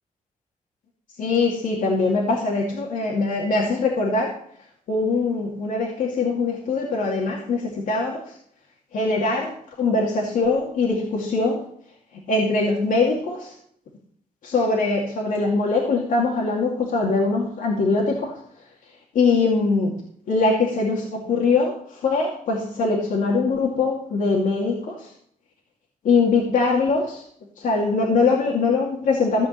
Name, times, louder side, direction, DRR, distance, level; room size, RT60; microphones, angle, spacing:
voice 1, 1.2-4.3 4.9-8.2 8.9-9.5 9.8-11.6 12.3-13.5 14.4-18.3 19.1-20.0 20.3-25.1 26.0-27.2 27.6-29.5, left 3 dB, 80° left, -2 dB, 2.4 m, -22 dB
14.5 x 5.3 x 8.2 m, 0.64 s
cardioid pair, 105°, 14 cm